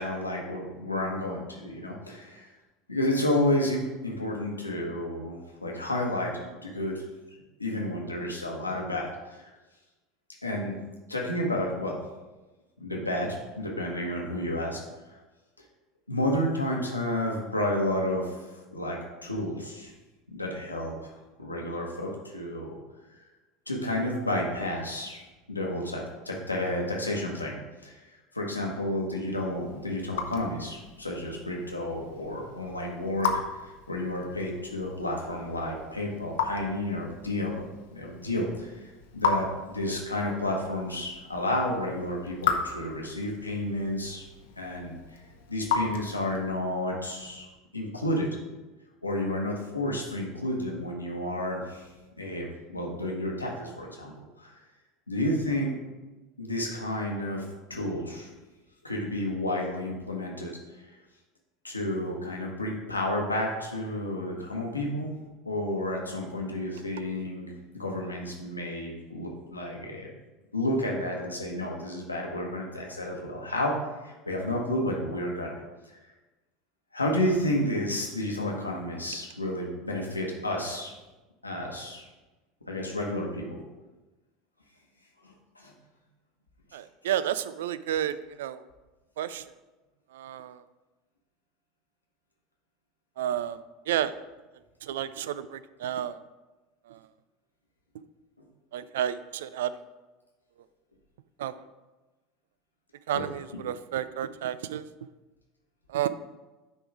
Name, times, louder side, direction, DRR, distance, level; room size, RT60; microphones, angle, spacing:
voice 1, 0.0-2.5 2.9-7.0 7.6-9.5 10.4-10.7 11.1-12.0 12.8-14.8 15.1-15.2 16.1-18.4 18.7-19.9 20.3-21.1 21.4-22.8 23.7-27.5 27.8-28.0 28.3-37.6 37.9-44.2 44.6-45.0 45.5-47.5 47.7-48.3 49.0-51.9 52.2-52.5 52.7-54.1 54.4-54.5 55.1-55.7 56.4-57.4 57.7-58.3 58.8-60.5 61.6-65.1 65.4-70.1 70.5-73.8 74.0-75.5 76.9-80.9 81.4-82.0 82.7-83.6 85.2-85.7 98.4-98.5 103.1-103.2, left 1 dB, 85° left, -1 dB, 1.2 m, -31 dB
Raindrop / Drip, 29.4-46.6, left 5 dB, 65° left, 0.8 m, -36 dB
voice 2, 86.7-88.6 89.2-89.4 90.1-90.6 93.2-93.6 93.9-94.1 94.9-96.2 98.7-99.7 101.4-101.5 103.1-104.9 105.9-106.1, right 11 dB, 65° right, 15 dB, 0.3 m, -31 dB
9.9 x 3.7 x 4.7 m, 1.1 s
figure-of-eight pair, 70°, 0 cm